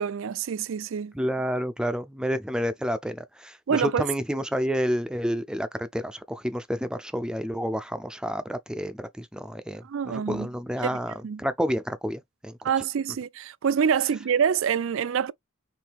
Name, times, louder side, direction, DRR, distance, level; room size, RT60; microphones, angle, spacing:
voice 1, 0.0-1.1 3.7-4.0 9.9-10.5 11.2-11.4 12.6-15.3, right 7 dB, 70° right, 0.4 m, -26 dB
voice 2, 1.1-12.7, equal, 5° right, 0.4 m, -30 dB
4.7 x 3.2 x 3.4 m
head